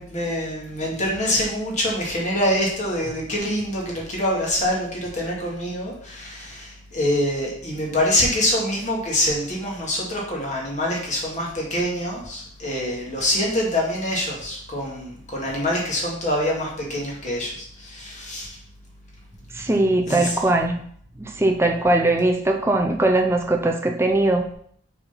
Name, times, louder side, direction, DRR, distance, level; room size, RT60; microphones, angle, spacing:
voice 1, 0.0-18.5 20.1-20.4, left 1 dB, 35° left, -3 dB, 2.2 m, -25 dB
voice 2, 19.5-20.8 21.2-24.5, right 2 dB, 10° right, 2 dB, 0.6 m, -20 dB
6.7 x 4.2 x 5.8 m, 0.62 s
head